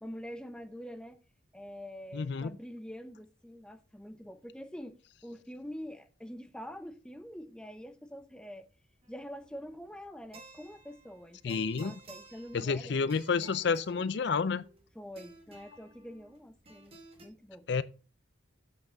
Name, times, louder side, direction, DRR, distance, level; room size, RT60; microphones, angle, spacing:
voice 1, 0.0-1.2 1.5-8.7 9.1-13.1 13.4-14.0 14.9-17.0 17.2-17.7, equal, 5° left, 0.7 m, -46 dB
voice 2, 2.1-2.5 11.4-11.9 12.5-14.6 17.7-17.8, left 5 dB, 60° left, 0.4 m, -30 dB
sound 1, 9.0-17.3, right 3 dB, 30° right, 1.9 m, -56 dB
8.0 x 5.8 x 5.0 m
head